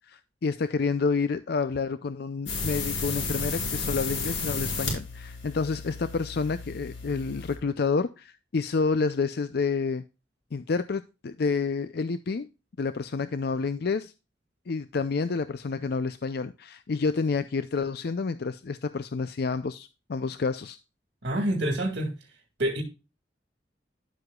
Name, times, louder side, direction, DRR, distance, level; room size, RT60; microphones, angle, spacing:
voice 1, 0.1-10.0 10.5-12.5 12.8-14.1 14.7-20.8, left 4 dB, 60° left, 0.5 m, -29 dB
sound 1, 2.5-7.6, left 4 dB, 85° left, 4.6 m, -33 dB
voice 2, 21.2-22.1 22.6-22.8, right 1 dB, 60° right, 2.0 m, -27 dB
11.0 x 7.8 x 2.3 m
head